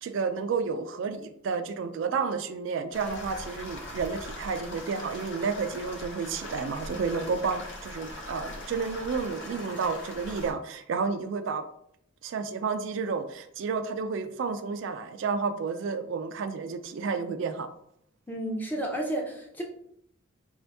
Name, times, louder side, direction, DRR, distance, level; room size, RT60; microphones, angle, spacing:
voice 1, 0.0-11.6 12.2-17.7, right 5 dB, 65° right, 8 dB, 0.3 m, -31 dB
sound 1, 2.9-10.5, left 1 dB, 60° left, 0.8 m, -41 dB
voice 2, 18.3-19.6, right 1 dB, 10° left, 1 dB, 0.5 m, -31 dB
4.3 x 2.6 x 3.4 m, 0.72 s
head